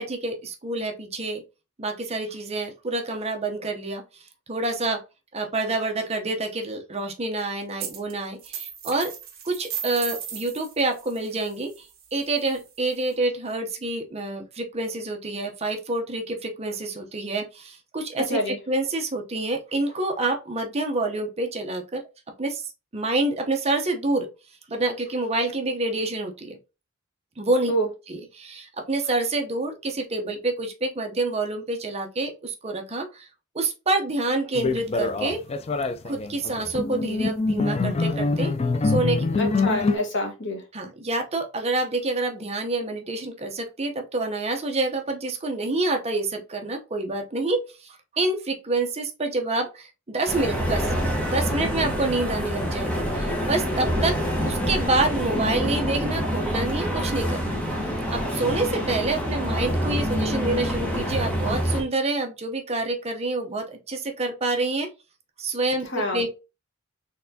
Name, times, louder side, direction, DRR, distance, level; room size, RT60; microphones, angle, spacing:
voice 1, 0.0-1.4 1.8-4.0 4.5-5.0 5.3-9.1 9.4-11.9 12.1-22.0 22.4-22.6 22.9-24.3 24.7-26.6 27.4-27.7 28.1-33.3 33.5-35.4 36.0-38.5 38.8-39.3 40.7-50.9 51.3-54.2 54.4-57.6 58.1-64.9 65.4-65.9 66.1-66.3, right 2 dB, 30° right, 0.7 m, -27 dB
sound 1, 7.8-8.1 8.4-13.1, right 8 dB, 45° right, 1.1 m, -37 dB
sound 2, 34.5-40.0, left 3 dB, 30° left, 0.4 m, -25 dB
voice 2, 39.3-40.6 65.8-66.3, equal, 60° left, 1.4 m, -27 dB
sound 3, 50.3-61.8, equal, 5° left, 1.1 m, -26 dB
4.1 x 3.4 x 2.7 m
head